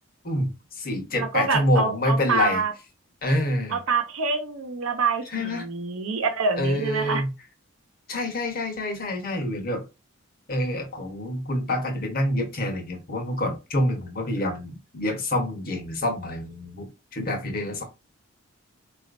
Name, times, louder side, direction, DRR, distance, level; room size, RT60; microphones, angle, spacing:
voice 1, 0.2-2.6 3.2-3.8 5.3-5.6 6.6-7.3 8.1-9.8 10.5-17.8, left 1 dB, 45° left, 1.0 m, -27 dB
voice 2, 1.1-2.7 3.7-7.2, right 4 dB, 85° right, 0.8 m, -26 dB
4.2 x 2.5 x 2.5 m
head